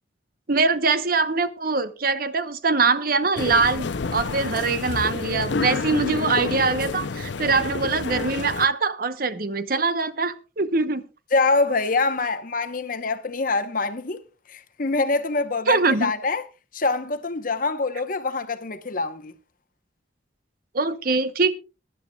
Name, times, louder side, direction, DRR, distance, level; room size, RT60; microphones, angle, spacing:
voice 1, 0.5-11.0 15.7-16.1 20.7-21.5, right 4 dB, 50° right, 0.9 m, -23 dB
sound 1, 3.4-8.7, left 4 dB, 75° left, 0.6 m, -29 dB
voice 2, 11.3-14.2 14.5-16.4 16.7-19.3, left 3 dB, 45° left, 0.9 m, -25 dB
22.5 x 11.5 x 2.3 m
head